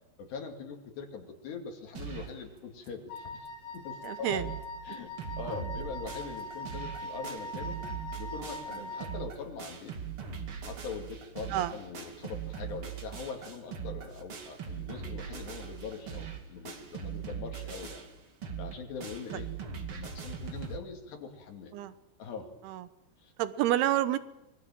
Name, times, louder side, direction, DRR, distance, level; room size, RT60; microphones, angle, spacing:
voice 1, 0.2-3.5 3.7-4.5 4.8-7.8 8.2-9.9 10.6-18.0 18.6-19.5 19.9-21.7 22.2-22.5 23.2-23.3, left 5 dB, 70° left, 3 dB, 4.6 m, -42 dB
sound 1, 1.9-2.4 2.9-3.0 3.2-3.3 3.7-3.8 4.0-4.6 4.9-20.8, right 7 dB, 40° right, 2.3 m, -40 dB
Wind instrument woodwind instrument, 3.1-9.2, left 2 dB, 85° left, 6.3 m, -42 dB
voice 2, 4.0-4.4 5.5-5.6 11.5-11.7 21.7-21.9 22.6-22.9 23.4-24.2, right 13 dB, 70° right, 13 dB, 2.8 m, -29 dB
26.0 x 21.0 x 7.7 m, 0.93 s
omnidirectional pair, 5.0 m